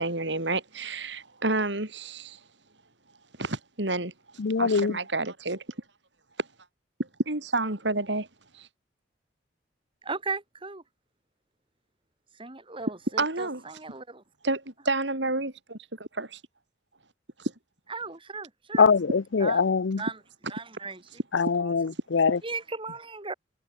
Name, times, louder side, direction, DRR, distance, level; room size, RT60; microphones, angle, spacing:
voice 1, 0.0-2.4 3.4-4.1 4.6-5.6 6.4-6.5 7.0-8.3 8.5-8.7 13.2-13.6 14.4-16.4 17.4-17.5, right 2 dB, 70° right, 4.6 m, -30 dB
voice 2, 4.4-5.0 18.8-20.0 21.3-22.4, left 5 dB, 80° left, 0.6 m, -23 dB
voice 3, 10.0-10.8 12.4-14.2 17.9-18.9 19.4-19.6 20.0-20.2 20.5-21.0 21.6-21.7 22.4-23.3, right 4 dB, 30° right, 4.4 m, -36 dB
head